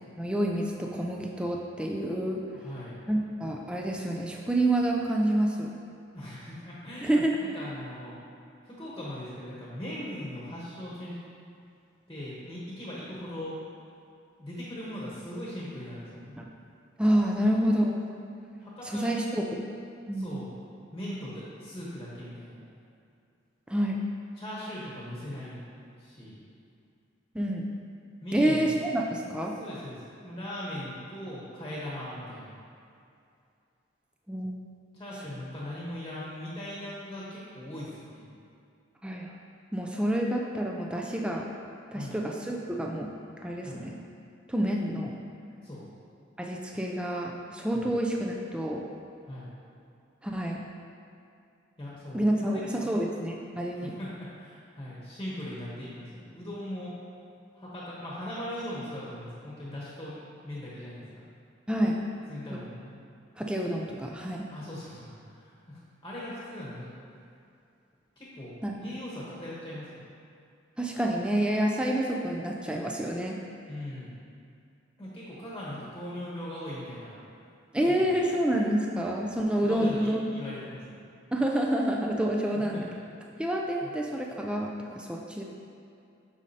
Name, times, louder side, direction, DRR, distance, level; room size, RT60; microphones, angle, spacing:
voice 1, 0.2-2.4 3.1-5.7 7.0-7.3 16.4-16.5 17.0-18.1 18.9-19.6 20.1-20.3 23.7-24.0 27.3-27.7 28.3-29.5 34.3-34.6 39.0-39.3 39.7-41.5 41.9-43.1 43.4-44.0 44.5-45.2 46.4-48.8 50.2-50.6 52.1-53.9 61.7-62.0 62.5-62.6 63.4-64.5 68.6-68.7 70.8-73.4 77.7-80.2 81.3-82.9 83.4-85.4, right 1 dB, 5° right, -1 dB, 0.4 m, -28 dB
voice 2, 2.6-3.0 6.1-8.2 8.6-11.2 12.1-13.6 14.4-16.3 18.6-19.4 20.2-20.5 20.9-22.6 24.4-25.6 26.0-26.4 28.2-28.8 29.6-32.5 34.9-38.3 41.9-42.2 43.6-43.8 45.6-45.9 47.7-47.9 49.3-49.5 51.8-52.9 53.7-56.9 57.5-60.2 60.4-61.2 62.3-63.0 64.5-66.9 68.2-70.1 73.7-74.1 75.0-77.1 77.8-78.1 79.6-80.8 82.7-82.8 83.8-83.9, left 1 dB, 20° left, -7 dB, 1.1 m, -40 dB
8.1 x 5.2 x 2.8 m, 2.5 s
head